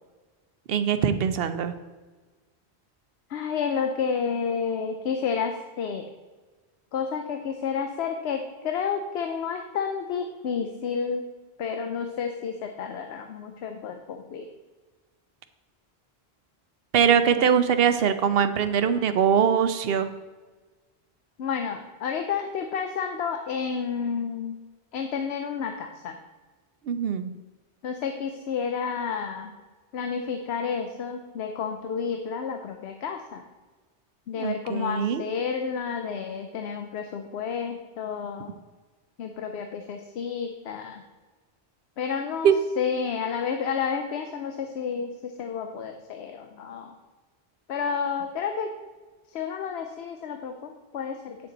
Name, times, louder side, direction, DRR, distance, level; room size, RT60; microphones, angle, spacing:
voice 1, 0.7-1.7 16.9-20.1 26.8-27.3 34.4-35.2 42.4-42.5, right 7 dB, 70° right, 10 dB, 0.8 m, -22 dB
voice 2, 3.3-6.1 6.9-11.3 11.6-14.5 17.4-17.5 21.4-24.6 24.9-26.2 27.8-29.5 29.9-33.4 34.3-38.5 39.2-41.0 42.0-42.5 42.8-47.0 47.7-48.7 49.3-51.4, left 6 dB, 85° left, 5 dB, 0.9 m, -30 dB
9.0 x 6.7 x 4.0 m, 1.3 s
omnidirectional pair, 1.1 m